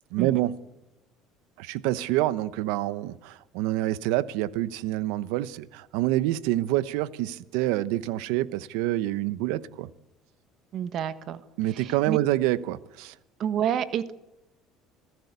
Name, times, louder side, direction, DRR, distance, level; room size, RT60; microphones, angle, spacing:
voice 1, 0.1-0.6 1.6-9.9 11.6-13.1, right 15 dB, 85° right, 1.0 m, -27 dB
voice 2, 10.7-11.4 11.7-12.2 13.4-14.1, right 9 dB, 55° right, 1.5 m, -29 dB
26.5 x 15.0 x 8.2 m
cardioid pair, 115°, 0 cm